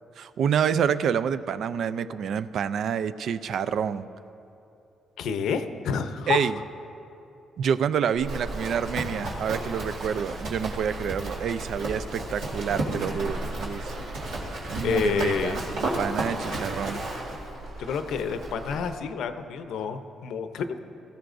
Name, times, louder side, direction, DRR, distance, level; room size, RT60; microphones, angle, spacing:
voice 1, 0.2-4.1 6.3-6.6 7.6-14.0 14.7-17.0, right 7 dB, 65° right, 14 dB, 0.4 m, -28 dB
voice 2, 5.2-6.5 14.8-15.6 17.8-20.8, left 6 dB, 80° left, 9 dB, 0.6 m, -29 dB
Livestock farm animals working animals, 8.2-19.0, right 2 dB, 85° right, 2.3 m, -33 dB
17.5 x 14.5 x 2.6 m, 2.8 s
cardioid pair, 90°, 0 cm